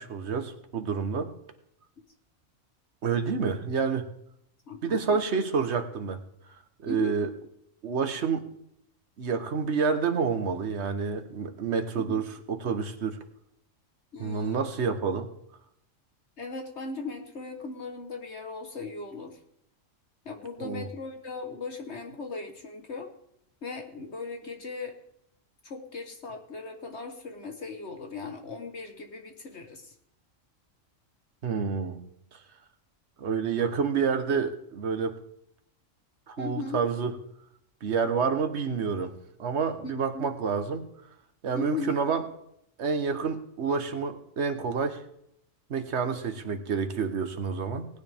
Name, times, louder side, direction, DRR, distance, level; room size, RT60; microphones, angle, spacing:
voice 1, 0.0-1.3 3.0-4.1 4.8-6.2 6.8-7.3 7.8-8.5 9.2-13.2 14.2-15.3 20.6-20.9 31.4-32.0 33.2-35.2 36.3-37.1 37.8-40.8 41.4-42.2 42.8-45.0 45.7-47.9, right 5 dB, 60° right, 8 dB, 1.4 m, -28 dB
voice 2, 4.7-5.2 6.9-7.1 12.0-12.2 14.1-14.7 16.4-19.4 20.2-23.1 23.6-25.0 25.6-29.9 36.4-36.8 39.8-40.3 41.5-42.0, left 4 dB, 55° left, 4 dB, 1.5 m, -38 dB
18.5 x 9.8 x 3.5 m, 0.73 s
omnidirectional pair, 1.4 m